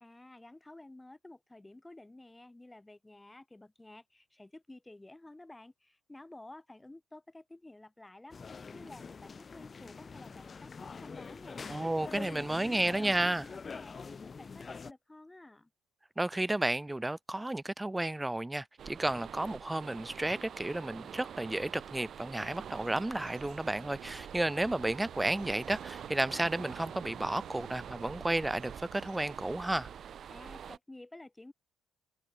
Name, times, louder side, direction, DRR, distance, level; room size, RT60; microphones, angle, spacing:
voice 1, 0.0-8.4 8.7-11.6 12.0-15.7 30.3-31.5, left 2 dB, 15° left, 2.0 m, -52 dB
sound 1, 8.3-14.9, left 5 dB, 35° left, 0.9 m, -45 dB
voice 2, 11.7-13.5 16.2-29.9, right 1 dB, 10° right, 0.7 m, -32 dB
sound 2, 18.8-30.8, right 8 dB, 55° right, 0.8 m, -46 dB
sound 3, 22.4-29.6, right 13 dB, 70° right, 3.4 m, -53 dB
supercardioid pair, 70°, 0 cm